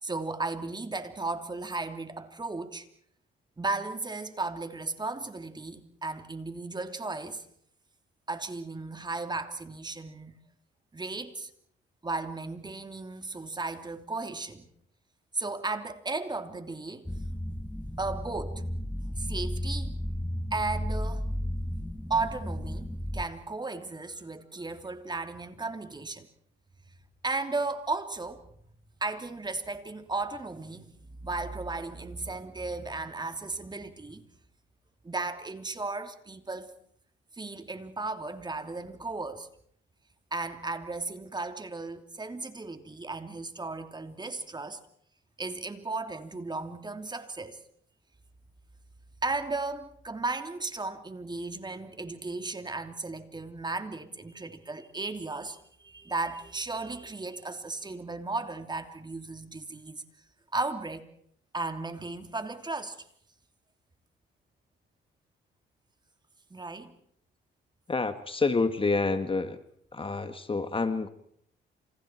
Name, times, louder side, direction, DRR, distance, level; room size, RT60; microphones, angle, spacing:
voice 1, 0.0-2.9 3.6-7.4 8.3-10.4 10.9-11.5 12.0-14.7 15.3-17.1 18.0-18.7 19.2-20.0 20.5-21.2 22.1-26.3 27.2-28.5 29.0-30.9 31.2-34.2 35.0-36.7 37.4-39.5 40.3-44.8 45.4-47.6 49.2-60.0 60.5-61.1 61.5-63.0 66.5-66.9, right 3 dB, 20° right, 3.0 m, -35 dB
sound 1, 17.0-23.2, equal, 5° left, 1.3 m, -33 dB
voice 2, 67.9-69.6 69.9-71.1, left 3 dB, 25° left, 1.7 m, -28 dB
29.5 x 28.5 x 4.6 m
cardioid pair, 90°, 20 cm